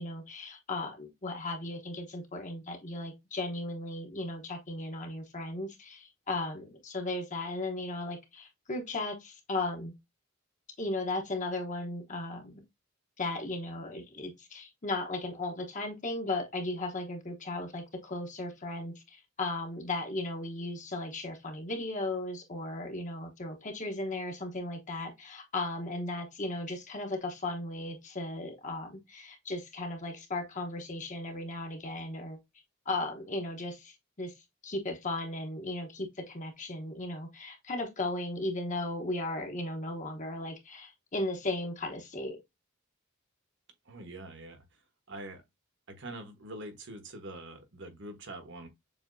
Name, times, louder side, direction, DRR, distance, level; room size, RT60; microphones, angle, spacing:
voice 1, 0.0-9.9 10.8-12.6 13.2-32.4 32.8-34.3 34.6-42.4, left 2 dB, 35° left, 1.1 m, -36 dB
voice 2, 43.8-44.6 45.1-45.4 45.9-48.7, right 1 dB, 60° right, 1.4 m, -44 dB
7.1 x 2.8 x 2.7 m
head